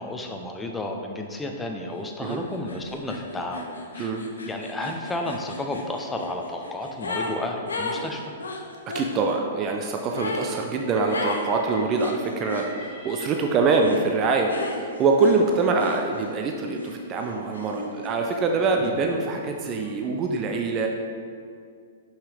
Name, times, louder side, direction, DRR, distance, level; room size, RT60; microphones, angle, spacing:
voice 1, 0.0-4.1 4.5-8.3 18.8-19.0, left 2 dB, 10° left, 2 dB, 0.7 m, -32 dB
sound 1, 2.2-2.4 2.7-7.4 7.7-9.1 10.1-10.5 11.1-11.5 12.0-12.7 13.8-14.1 14.5-16.3 16.7-18.1, left 2 dB, 85° left, 0.7 m, -34 dB
voice 2, 8.9-20.9, right 4 dB, 30° right, 2 dB, 0.5 m, -24 dB
Train, 10.6-14.0 14.8-20.1, left 3 dB, 55° left, 1.5 m, -47 dB
5.7 x 5.6 x 3.4 m, 2.2 s
hypercardioid pair, 115°, 0 cm